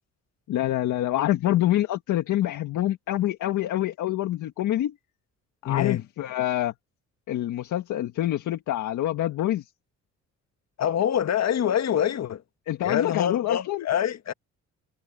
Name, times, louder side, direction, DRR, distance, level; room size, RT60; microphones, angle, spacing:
voice 1, 0.5-4.9 5.6-6.7 7.3-9.7 12.7-13.9, left 13 dB, 80° left, 1.7 m, -26 dB
voice 2, 5.6-6.0 10.8-12.4 12.8-14.3, left 9 dB, 60° left, 1.6 m, -25 dB
cardioid pair, 90°, 30 cm